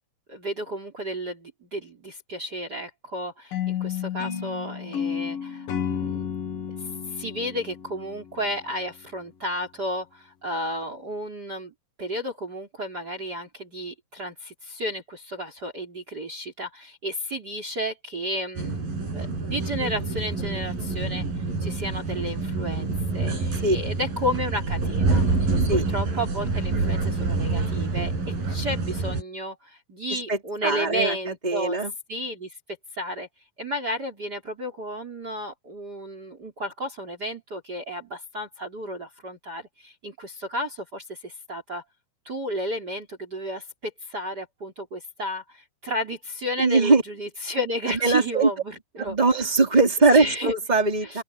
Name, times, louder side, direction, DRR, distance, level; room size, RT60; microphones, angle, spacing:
voice 1, 0.3-6.3 6.8-11.7 12.0-18.8 19.1-28.1 28.5-31.8 32.1-32.6 32.9-33.3 33.6-41.8 42.2-49.5 50.1-50.5 51.0-51.2, equal, 30° right, 4.1 m, -32 dB
sound 1, 3.5-8.6, left 8 dB, 75° left, 3.8 m, -32 dB
sound 2, 18.6-29.2, right 3 dB, 80° right, 9.8 m, -27 dB
voice 2, 30.1-31.9 46.6-47.0 47.9-48.5 49.0-51.2, right 3 dB, 10° right, 4.4 m, -21 dB
open air
omnidirectional pair, 4.0 m